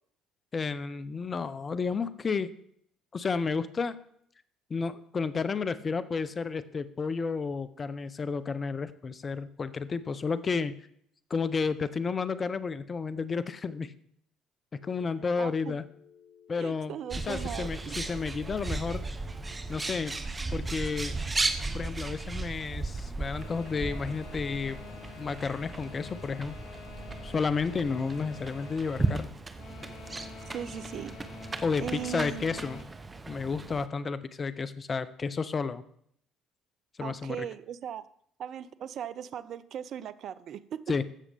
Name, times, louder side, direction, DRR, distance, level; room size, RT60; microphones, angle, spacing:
voice 1, 0.5-2.5 3.1-4.0 4.7-10.8 11.3-13.9 14.8-15.8 16.5-16.9 17.2-19.0 19.7-20.1 20.5-21.1 21.7-24.8 25.2-26.6 27.2-29.3 31.6-32.8 33.3-35.8 37.0-37.5 40.9-41.0, left 5 dB, 35° left, 14 dB, 0.7 m, -31 dB
Telephone, 14.8-19.8, left 8 dB, 80° left, 2.6 m, -57 dB
voice 2, 15.4-15.8 16.6-18.0 30.5-31.2 31.8-32.4 37.0-38.0 38.4-40.8, right 9 dB, 55° right, 16 dB, 0.5 m, -38 dB
Bird, 17.1-33.9, right 3 dB, 25° right, 0.8 m, -36 dB
sound 1, 23.3-32.8, left 5 dB, 65° left, 1.2 m, -47 dB
15.0 x 6.4 x 3.4 m, 0.66 s
hypercardioid pair, 60°, 0 cm